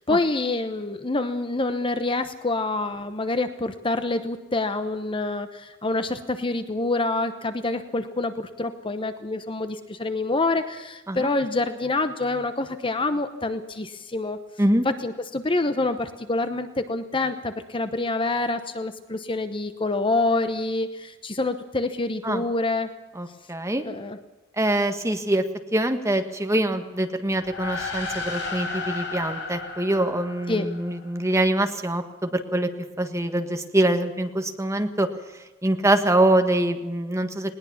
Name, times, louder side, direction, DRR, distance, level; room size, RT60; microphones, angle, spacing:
voice 1, 0.0-14.4 15.0-22.9 23.8-24.2 30.5-30.7, left 2 dB, 25° left, 9 dB, 0.9 m, -26 dB
voice 2, 23.1-23.8 24.6-25.4 25.7-32.7 33.0-35.1 35.6-37.5, right 1 dB, 15° right, 6 dB, 1.6 m, -24 dB
sound 1, 27.4-31.1, left 3 dB, 60° left, 6.4 m, -33 dB
20.0 x 19.0 x 7.2 m, 1.1 s
head